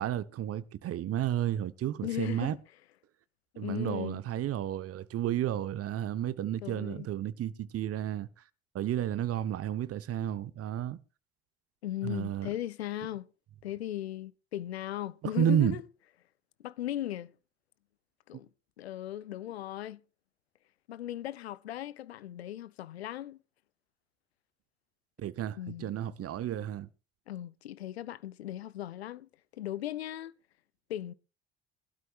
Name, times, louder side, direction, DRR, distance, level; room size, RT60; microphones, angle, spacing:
voice 1, 0.0-2.5 3.6-8.3 8.7-11.0 12.0-12.5 15.3-15.8 25.2-26.9, right 11 dB, 50° right, 1.1 m, -32 dB
voice 2, 2.0-2.6 3.5-4.2 6.6-7.1 11.8-13.3 13.6-15.8 16.6-17.3 18.3-18.5 18.8-20.0 20.9-23.4 25.6-26.3 27.3-30.3 30.9-31.1, left 13 dB, 85° left, 0.5 m, -37 dB
21.5 x 12.5 x 2.5 m
hypercardioid pair, 55°, 31 cm